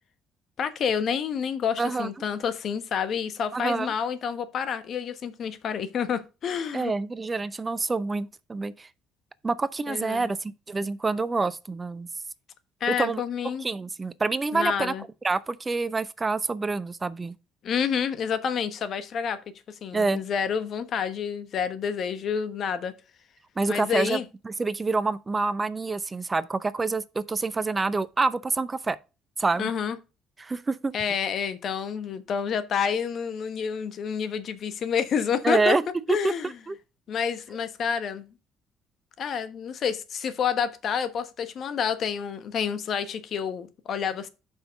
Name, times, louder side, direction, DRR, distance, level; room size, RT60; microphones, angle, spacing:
voice 1, 0.6-6.9 9.9-10.3 12.8-13.7 14.5-15.0 17.6-19.4 19.8-22.9 23.7-24.2 29.6-30.0 30.9-35.8 36.1-36.5 37.1-38.3 39.2-44.3, left 7 dB, 55° left, 1.2 m, -28 dB
voice 2, 1.8-2.1 3.5-3.9 6.7-8.9 9.4-12.1 12.9-14.9 15.2-17.4 19.9-20.2 23.6-24.2 24.4-29.0 29.4-29.7 30.4-30.9 35.4-35.8 36.1-36.7, right 3 dB, 30° right, 0.7 m, -27 dB
6.9 x 5.7 x 5.1 m
hypercardioid pair, 55°, 0 cm